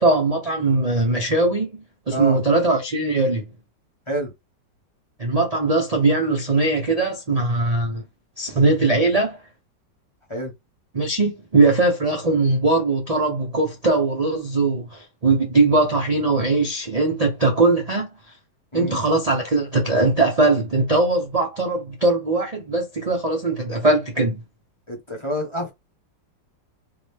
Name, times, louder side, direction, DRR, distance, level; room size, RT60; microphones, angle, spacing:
voice 1, 0.0-3.4 5.2-8.0 8.4-9.4 10.9-18.1 18.7-24.4, right 3 dB, 50° right, 0.4 m, -20 dB
voice 2, 24.9-25.7, right 1 dB, 20° left, 0.9 m, -28 dB
3.8 x 3.2 x 3.4 m
omnidirectional pair, 2.0 m